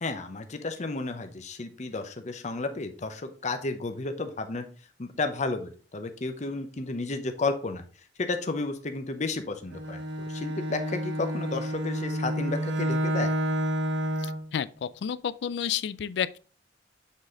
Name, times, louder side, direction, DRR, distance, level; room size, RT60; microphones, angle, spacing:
voice 1, 0.0-4.6 5.0-7.8 8.2-13.3, left 3 dB, 40° left, 0.7 m, -32 dB
Bowed string instrument, 9.7-14.5, equal, 85° right, 0.8 m, -29 dB
voice 2, 14.2-16.4, left 8 dB, 70° left, 0.3 m, -31 dB
7.2 x 4.2 x 3.7 m
head